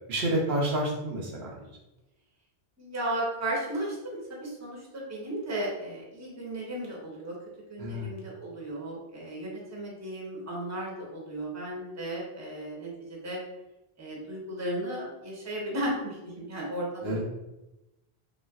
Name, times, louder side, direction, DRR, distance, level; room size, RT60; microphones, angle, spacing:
voice 1, 0.1-1.5 7.8-8.1 17.0-17.2, right 1 dB, 80° right, -2 dB, 1.0 m, -29 dB
voice 2, 2.8-7.3 7.7-13.4 14.0-17.2, right 1 dB, 15° right, -4 dB, 0.8 m, -35 dB
3.2 x 3.1 x 2.3 m, 0.96 s
omnidirectional pair, 1.1 m